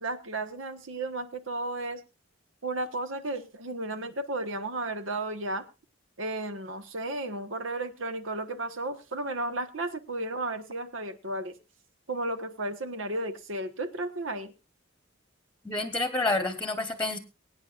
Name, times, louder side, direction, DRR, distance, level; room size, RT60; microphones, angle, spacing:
voice 1, 0.0-2.0 2.6-5.7 6.2-11.5 12.1-14.5, right 2 dB, 85° right, 9 dB, 1.4 m, -33 dB
voice 2, 15.6-17.2, left 2 dB, 5° left, 7 dB, 1.2 m, -28 dB
23.5 x 9.1 x 2.5 m, 0.27 s
head